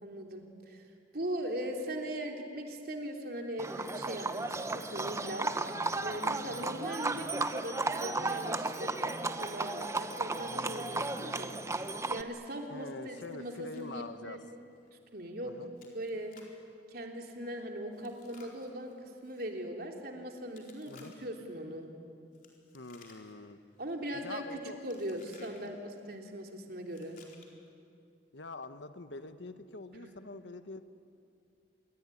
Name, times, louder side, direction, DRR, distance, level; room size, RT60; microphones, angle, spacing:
voice 1, 0.0-0.9 1.1-5.5 6.0-11.5 12.1-14.4 15.1-15.5 15.9-16.3 16.9-21.9 23.8-27.2 30.0-30.1, equal, 55° right, 2 dB, 3.3 m, -40 dB
Livestock farm animals working animals, 3.6-12.2, right 3 dB, 15° right, 0.9 m, -34 dB
voice 2, 12.7-14.4 15.4-15.7 20.9-21.1 22.7-23.6 24.1-24.8 28.3-30.8, left 2 dB, 85° left, 9 dB, 1.4 m, -45 dB
Chewing mastication, 13.2-13.9 14.2-14.3 14.8-14.9 15.8-16.6 17.9-19.5 20.5-21.4 22.3-23.5 23.8-24.2 24.9-25.7 26.8-27.7, left 5 dB, 50° left, 4.3 m, -60 dB
26.5 x 22.5 x 10.0 m, 2.5 s
head